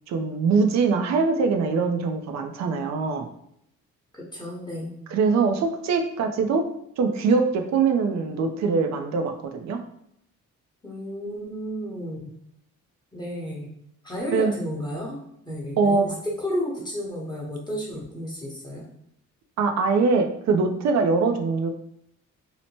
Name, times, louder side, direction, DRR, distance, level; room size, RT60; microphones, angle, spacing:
voice 1, 0.1-3.3 5.1-6.6 7.0-9.8 14.3-14.5 15.8-16.1 19.6-21.7, right 4 dB, 65° right, 5 dB, 0.5 m, -22 dB
voice 2, 4.1-5.0 10.8-12.3 13.1-13.7 14.0-15.2 15.5-18.8, equal, 15° left, -5 dB, 0.9 m, -32 dB
2.8 x 2.1 x 2.9 m, 0.73 s
cardioid pair, 90°, 30 cm